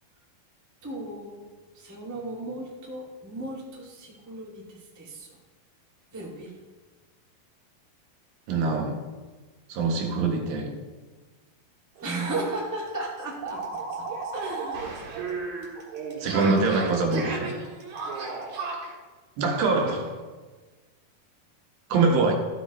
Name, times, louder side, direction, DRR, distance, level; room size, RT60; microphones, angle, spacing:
voice 1, 0.8-1.5 1.7-5.4 6.1-6.6 12.0-13.6 14.0-14.1 14.3-15.2, right 2 dB, 10° right, -4 dB, 0.8 m, -35 dB
voice 2, 8.5-9.0 9.7-10.7 16.2-17.5 19.4-20.1 21.9-22.3, right 3 dB, 75° right, 1 dB, 2.9 m, -24 dB
sound 1, 12.0-12.1 12.4-12.5 12.8-18.9, right 4 dB, 55° right, 2.7 m, -34 dB
14.0 x 8.8 x 3.0 m, 1.3 s
omnidirectional pair, 4.4 m